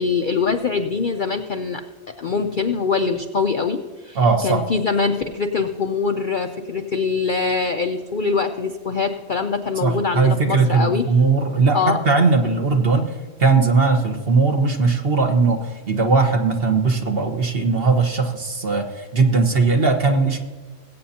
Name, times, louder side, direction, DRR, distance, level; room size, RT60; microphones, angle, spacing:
voice 1, 0.0-1.8 2.2-11.1 11.7-12.0, left 4 dB, 55° left, 6 dB, 0.6 m, -23 dB
voice 2, 4.1-4.6 9.8-11.8 12.0-20.4, right 4 dB, 45° right, 4 dB, 1.4 m, -19 dB
21.0 x 8.6 x 2.8 m, 1.4 s
omnidirectional pair, 1.5 m